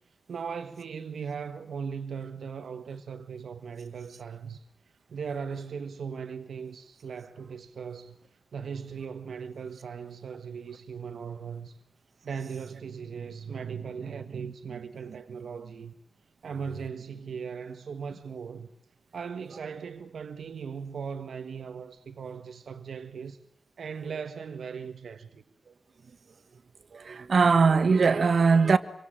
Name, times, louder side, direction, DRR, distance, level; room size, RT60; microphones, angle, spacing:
voice 1, 0.3-4.6 5.1-8.2 8.5-11.8 12.2-15.9 16.4-18.7 19.1-23.4 23.8-25.4, right 6 dB, 85° right, 1.6 m, -38 dB
voice 2, 26.9-28.8, right 5 dB, 55° right, 1.6 m, -21 dB
26.5 x 24.5 x 9.0 m
wide cardioid pair, 150°, 0 cm